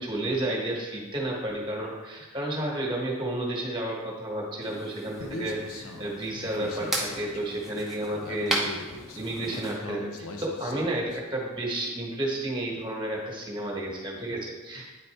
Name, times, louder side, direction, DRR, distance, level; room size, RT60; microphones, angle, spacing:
voice 1, 0.0-8.6 8.8-14.9, right 1 dB, 20° right, -2 dB, 1.3 m, -31 dB
sound 1, 4.6-9.8, right 1 dB, ahead, 0.9 m, -35 dB
Human voice, 5.2-11.2, left 2 dB, 80° left, 0.8 m, -40 dB
9.4 x 4.1 x 3.4 m, 1.2 s
head